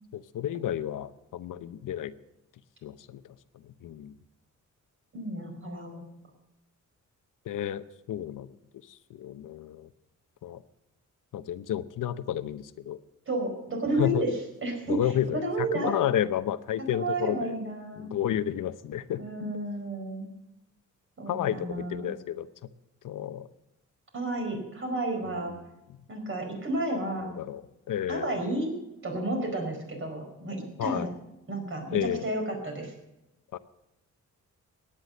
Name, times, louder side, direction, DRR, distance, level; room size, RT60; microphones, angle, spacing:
voice 1, 0.1-2.1 2.8-3.2 3.8-4.2 7.5-8.5 8.9-9.9 10.4-10.6 11.3-13.0 14.0-14.2 14.9-17.6 18.0-19.2 21.3-22.5 23.0-23.5 25.5-25.6 27.4-27.6 27.9-28.4 30.8-31.1 31.9-32.2 33.5-33.6, left 11 dB, 80° left, 13 dB, 0.8 m, -31 dB
voice 2, 5.1-6.0 13.3-14.3 14.6-15.0 15.3-16.0 16.9-18.1 19.2-20.3 21.2-22.1 24.1-25.5 26.1-27.3 28.1-28.7 29.0-31.1 31.5-32.9, right 2 dB, 40° right, 3 dB, 4.8 m, -31 dB
15.5 x 10.0 x 6.5 m, 0.93 s
wide cardioid pair, 145°, 31 cm